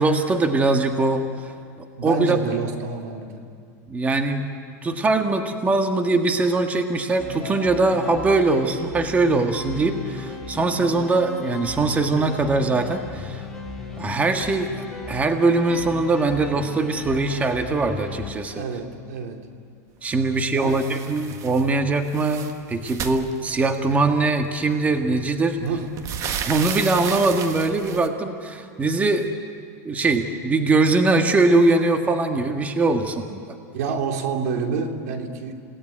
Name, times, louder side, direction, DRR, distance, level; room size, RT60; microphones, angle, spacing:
voice 1, 0.0-1.5 2.0-2.4 3.9-13.4 14.0-18.6 20.0-25.6 26.4-29.3 29.8-33.4, right 3 dB, 15° right, 5 dB, 1.5 m, -22 dB
voice 2, 2.0-3.4 18.5-19.5 20.5-20.8 25.6-26.1 33.7-35.5, right 4 dB, 75° right, 4 dB, 2.9 m, -28 dB
sound 1, 7.2-18.3, left 3 dB, 5° left, 3.6 m, -36 dB
sound 2, 20.7-21.7 22.0-23.9 24.9-25.0 25.4-28.1, right 8 dB, 35° right, 1.5 m, -33 dB
29.0 x 18.0 x 9.9 m, 2.4 s
supercardioid pair, 130°, 9 cm